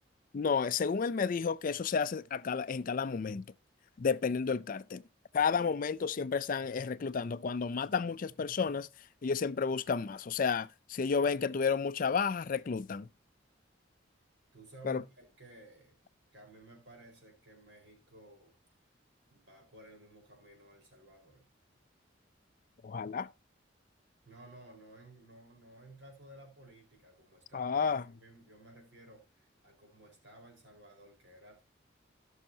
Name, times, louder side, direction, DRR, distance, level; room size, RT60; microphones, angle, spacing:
voice 1, 0.3-3.4 4.0-5.0 5.3-8.9 9.2-13.1 14.8-15.0 22.8-23.3 27.5-28.1, left 5 dB, 45° left, 0.4 m, -31 dB
voice 2, 14.5-16.0 16.3-18.5 19.3-21.5 24.2-31.6, right 2 dB, 65° right, 4.6 m, -55 dB
17.0 x 6.4 x 2.7 m
head